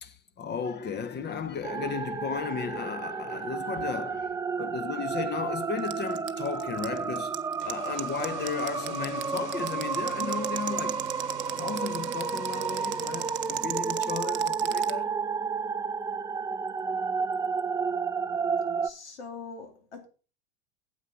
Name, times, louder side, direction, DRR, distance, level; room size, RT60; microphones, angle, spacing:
voice 1, 0.0-11.1 11.6-15.1, left 6 dB, 30° left, 1.1 m, -35 dB
sound 1, 1.6-18.9, right 5 dB, 10° right, 0.4 m, -31 dB
sound 2, 5.8-14.9, right 14 dB, 35° right, 0.8 m, -35 dB
sound 3, 7.4-14.2, right 8 dB, 85° right, 1.1 m, -45 dB
voice 2, 18.8-20.1, left 5 dB, 80° left, 2.5 m, -43 dB
9.2 x 8.0 x 4.6 m
hypercardioid pair, 85°, 33 cm